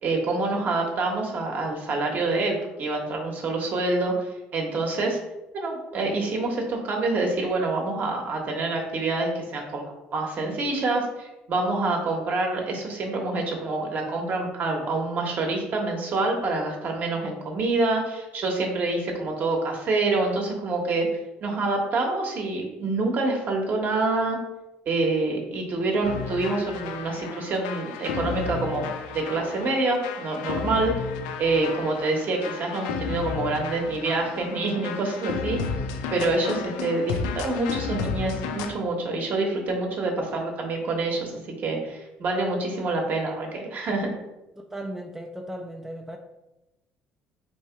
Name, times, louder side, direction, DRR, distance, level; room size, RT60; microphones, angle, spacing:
voice 1, 0.0-5.2 5.5-9.8 10.1-21.1 21.4-24.4 24.9-28.9 29.1-30.9 31.4-35.7 36.1-41.3 41.6-44.1, right 2 dB, 50° right, 1 dB, 1.1 m, -26 dB
sound 1, 26.0-38.7, left 5 dB, 90° left, 0.4 m, -33 dB
voice 2, 44.6-46.2, right 1 dB, 5° right, 3 dB, 0.4 m, -36 dB
3.1 x 2.8 x 4.5 m, 0.98 s
supercardioid pair, 85°, 4 cm